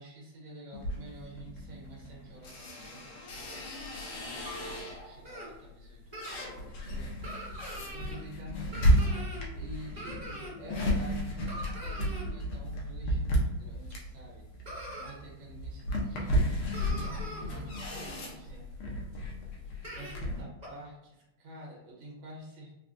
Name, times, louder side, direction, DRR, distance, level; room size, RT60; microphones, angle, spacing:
voice 1, 0.0-7.1 7.6-18.6 19.6-22.8, right 1 dB, 70° right, -4 dB, 1.7 m, -49 dB
sound 1, 0.7-5.2 5.7-20.4, equal, 80° left, 1.5 m, -33 dB
sound 2, 4.4-4.7 5.2-5.5 6.1-6.4 7.2-8.2 8.7-9.5 9.9-10.5 11.5-12.3 13.9-14.0 14.7-15.1 15.9-16.0 16.3-16.4 16.7-17.4 19.1-19.2 19.8-20.2 20.6-20.7, right 1 dB, 40° right, 0.5 m, -42 dB
4.2 x 2.1 x 2.5 m, 0.92 s
omnidirectional pair, 2.3 m